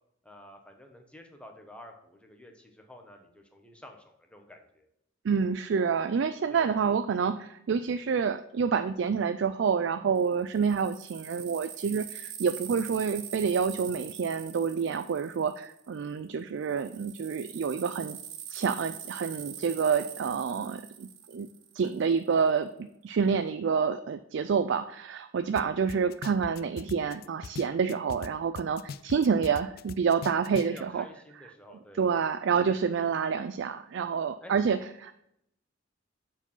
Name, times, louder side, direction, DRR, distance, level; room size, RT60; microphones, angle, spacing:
voice 1, 0.2-4.9 6.5-6.9 30.7-32.1 34.4-34.5, left 1 dB, 5° left, 3 dB, 1.0 m, -50 dB
voice 2, 5.2-18.2 18.5-21.5 21.7-31.1 32.0-35.2, right 6 dB, 65° right, 11 dB, 0.4 m, -28 dB
sound 1, 10.2-16.1 16.6-22.0, right 9 dB, 85° right, 1.0 m, -43 dB
sound 2, 25.6-25.7 25.9-28.3 28.6-30.8, left 5 dB, 55° left, 0.3 m, -40 dB
6.9 x 4.8 x 5.5 m, 0.75 s
head